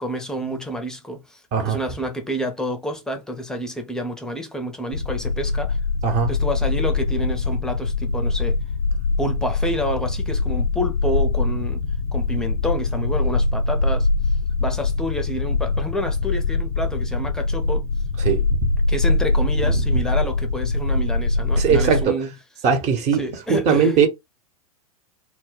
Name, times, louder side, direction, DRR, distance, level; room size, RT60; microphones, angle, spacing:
voice 1, 0.0-5.8 6.3-8.6 9.2-11.8 12.1-14.1 14.6-17.9 18.9-22.3 23.2-23.9, equal, 5° left, 0.6 m, -29 dB
sound 1, 4.9-22.0, left 3 dB, 75° left, 0.4 m, -23 dB
voice 2, 18.2-18.7 19.6-19.9 21.6-22.2 22.6-24.1, right 7 dB, 35° right, 0.9 m, -20 dB
2.1 x 2.1 x 3.8 m
figure-of-eight pair, 95°, 19 cm